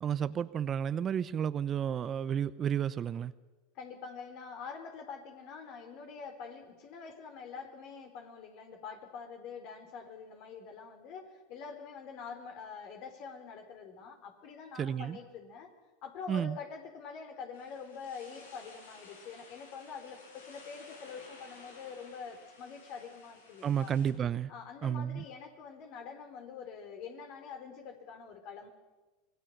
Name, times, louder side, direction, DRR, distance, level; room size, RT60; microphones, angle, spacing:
voice 1, 0.0-3.3 14.8-15.2 16.3-16.6 23.6-24.5 24.8-25.2, right 8 dB, 35° right, 15 dB, 0.8 m, -31 dB
voice 2, 3.7-15.7 16.0-23.9 24.5-28.7, left 5 dB, 55° left, 6 dB, 4.1 m, -45 dB
sound 1, 17.5-24.1, left 3 dB, 90° left, 5.1 m, -55 dB
25.5 x 20.0 x 6.7 m, 1.2 s
hypercardioid pair, 95°, 0 cm